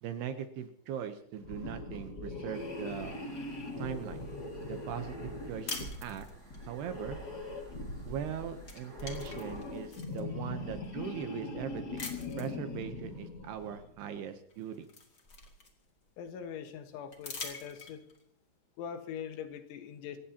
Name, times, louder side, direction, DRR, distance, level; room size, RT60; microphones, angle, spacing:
voice 1, 0.0-3.2 3.8-4.3 4.7-5.7 6.0-6.3 6.7-7.2 8.1-12.1 12.4-14.9, right 8 dB, 75° right, 8 dB, 2.6 m, -40 dB
sound 1, 1.4-13.9, left 2 dB, 60° left, 1.0 m, -41 dB
sound 2, 2.5-9.9, right 1 dB, 15° right, 5.2 m, -56 dB
sound 3, 5.7-6.7 8.1-8.3 8.6-10.2 10.8-10.9 12.0-12.6 14.0-14.1 14.5-16.0 17.1-18.2, left 4 dB, 40° left, 1.5 m, -44 dB
voice 2, 16.2-18.0 18.8-20.2, left 8 dB, 90° left, 6 dB, 3.8 m, -42 dB
27.5 x 15.5 x 2.9 m, 0.70 s
omnidirectional pair, 5.3 m